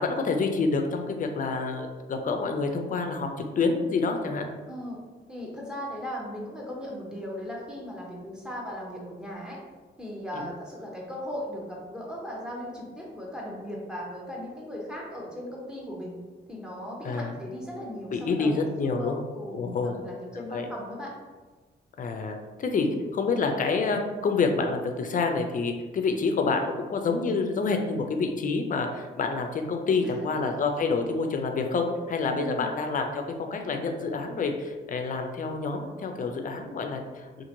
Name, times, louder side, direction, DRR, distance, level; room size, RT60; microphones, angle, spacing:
voice 1, 0.0-3.3 3.6-4.5 10.3-10.4 17.0-17.3 18.1-19.2 19.5-20.0 20.5-20.7 22.0-37.4, left 4 dB, 45° left, 4 dB, 0.4 m, -28 dB
voice 2, 4.7-5.0 5.3-9.6 10.0-16.2 16.5-21.1 22.7-23.0 30.0-30.3 32.3-32.7, equal, 5° right, -3 dB, 0.7 m, -38 dB
2.8 x 2.5 x 2.6 m, 1.4 s
cardioid pair, 90°, 19 cm